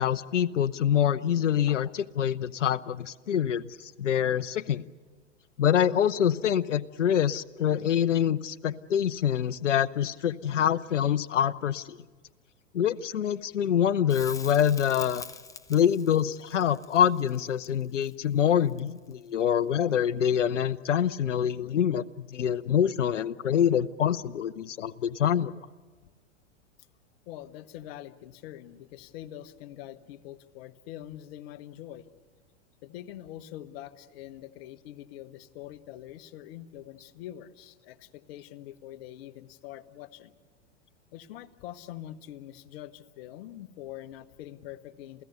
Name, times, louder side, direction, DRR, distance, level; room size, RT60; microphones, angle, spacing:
voice 1, 0.0-4.8 5.6-12.0 12.7-15.2 15.7-25.5, left 9 dB, 85° left, 14 dB, 0.7 m, -25 dB
Crackle, 14.1-19.2 22.0-22.1, left 4 dB, 10° left, 0.9 m, -46 dB
voice 2, 27.3-32.1 32.8-40.3 41.1-45.2, left 12 dB, 55° left, 11 dB, 1.3 m, -44 dB
28.0 x 16.5 x 8.2 m, 1.4 s
hypercardioid pair, 100°, 36 cm